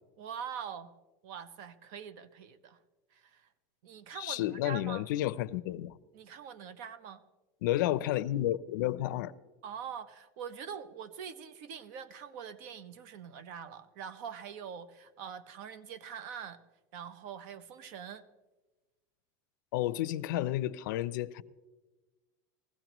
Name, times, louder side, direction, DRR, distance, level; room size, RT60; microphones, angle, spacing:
voice 1, 0.2-0.9 1.2-2.8 3.1-3.5 3.8-5.1 6.1-7.2 9.6-16.6 16.9-18.2, right 8 dB, 65° right, 0.9 m, -44 dB
voice 2, 4.1-6.0 7.6-9.3 19.7-21.4, left 14 dB, 85° left, 0.5 m, -31 dB
20.0 x 15.5 x 3.0 m
supercardioid pair, 145°, 10 cm